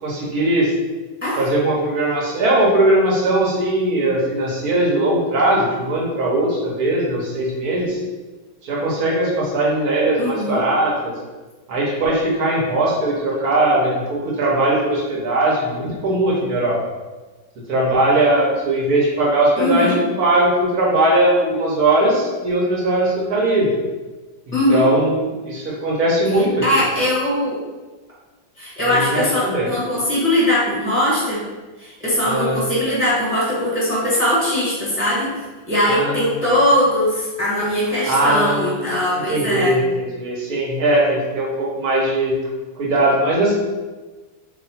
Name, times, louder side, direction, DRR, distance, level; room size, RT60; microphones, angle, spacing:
voice 1, 0.0-0.7 1.4-8.0 8.6-11.1 11.7-16.8 17.7-23.7 24.5-26.6 28.9-29.7 32.2-32.6 35.8-36.3 38.0-42.4 42.8-43.5, right 1 dB, 60° right, -3 dB, 1.2 m, -19 dB
voice 2, 10.2-10.6 19.6-20.0 24.5-24.9 26.6-27.6 28.6-31.5 31.8-35.3 35.7-39.8, left 1 dB, 10° right, -8 dB, 0.9 m, -20 dB
3.0 x 2.7 x 4.1 m, 1.2 s
omnidirectional pair, 2.1 m